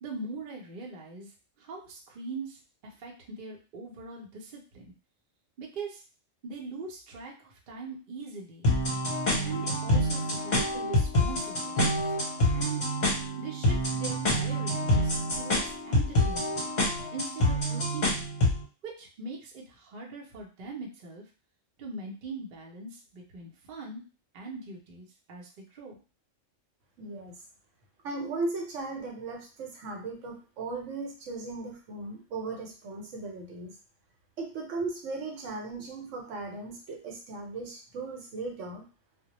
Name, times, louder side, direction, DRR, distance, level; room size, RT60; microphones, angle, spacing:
voice 1, 0.0-1.3 1.6-4.9 5.6-6.0 6.4-8.7 9.4-12.2 12.5-12.9 13.4-16.6 17.1-18.2 18.8-21.3 21.8-24.0 24.3-26.0, right 3 dB, 55° right, -1 dB, 0.6 m, -41 dB
sound 1, 8.6-18.6, left 1 dB, 40° left, 0.7 m, -27 dB
voice 2, 27.0-27.4 28.0-33.7 34.4-38.9, right 3 dB, 75° right, 1 dB, 1.0 m, -37 dB
2.1 x 2.1 x 2.8 m, 0.35 s
omnidirectional pair, 1.3 m